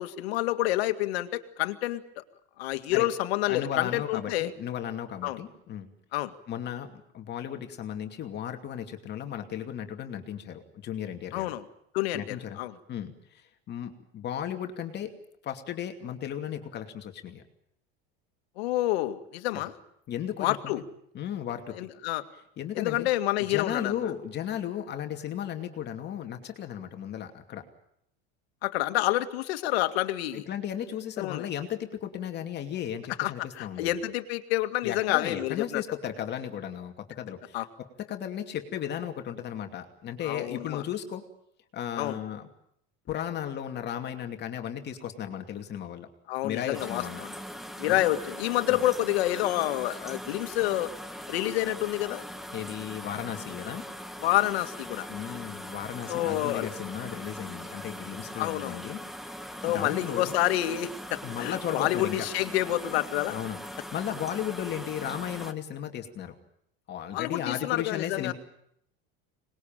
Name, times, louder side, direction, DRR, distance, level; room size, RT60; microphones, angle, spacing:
voice 1, 0.0-2.2 2.6-4.5 5.2-5.4 6.1-6.3 11.3-11.6 11.9-12.7 18.6-19.8 20.4-20.8 21.8-22.2 22.8-24.0 28.6-30.4 31.2-31.4 33.2-35.8 37.5-37.7 40.2-40.8 42.0-42.2 46.3-47.3 47.8-50.9 51.3-52.2 54.2-55.1 56.1-56.7 58.4-58.8 59.6-63.4 67.1-68.3, left 15 dB, 90° left, 9 dB, 2.1 m, -28 dB
voice 2, 3.5-5.9 6.5-11.5 12.1-12.6 12.9-17.4 19.5-19.6 20.1-20.8 21.1-21.9 22.6-23.1 23.4-27.7 30.3-34.0 34.8-41.2 41.7-42.5 43.1-46.1 46.4-47.2 47.9-48.0 48.7-48.8 52.5-53.9 55.1-59.0 59.3-60.4 61.2-62.3 63.3-66.3 66.9-68.3, left 10 dB, 35° left, 5 dB, 2.6 m, -35 dB
sound 1, 46.7-65.5, equal, ahead, 1.4 m, -41 dB
26.0 x 20.5 x 9.1 m, 0.74 s
supercardioid pair, 150°, 30 cm